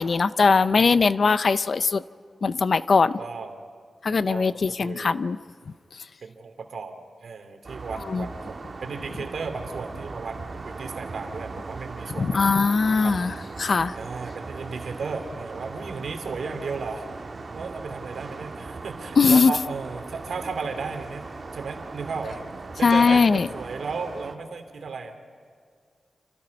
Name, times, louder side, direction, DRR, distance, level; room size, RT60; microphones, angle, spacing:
voice 1, 0.0-2.0 2.4-3.2 4.0-5.4 8.1-8.3 12.2-13.9 19.2-19.5 22.8-23.5, left 4 dB, 55° left, 14 dB, 0.6 m, -20 dB
voice 2, 3.2-3.6 4.3-5.2 6.2-6.9 7.2-10.4 10.6-12.4 13.0-13.1 13.9-17.0 17.5-21.3 21.5-22.4 22.8-25.2, right 4 dB, 75° right, 6 dB, 2.8 m, -34 dB
sound 1, 7.6-24.4, right 3 dB, 45° right, 1.7 m, -38 dB
29.5 x 27.5 x 5.4 m, 2.1 s
wide cardioid pair, 120°, 0 cm